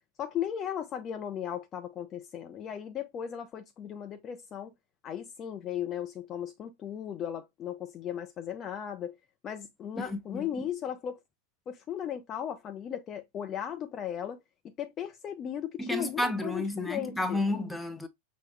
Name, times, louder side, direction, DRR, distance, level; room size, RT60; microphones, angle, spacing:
voice 1, 0.2-4.7 5.0-9.2 9.4-11.2 11.7-14.4 14.6-17.4, left 9 dB, 30° left, 0.5 m, -36 dB
voice 2, 10.0-10.7 15.8-18.1, left 1 dB, 5° left, 0.8 m, -32 dB
6.0 x 2.1 x 3.2 m
figure-of-eight pair, 90°, 0 cm